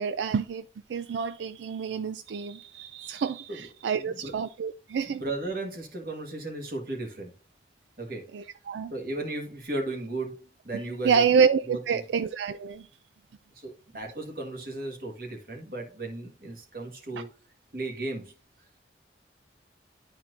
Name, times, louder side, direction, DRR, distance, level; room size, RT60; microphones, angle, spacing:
voice 1, 0.0-5.2 8.3-8.9 11.0-12.9 17.1-17.2, right 6 dB, 85° right, 0.3 m, -27 dB
voice 2, 3.9-4.3 5.0-7.3 8.0-8.3 8.9-11.3 11.7-12.0 13.5-17.3 17.7-18.3, right 2 dB, 50° right, 1.6 m, -35 dB
11.0 x 4.4 x 2.5 m
head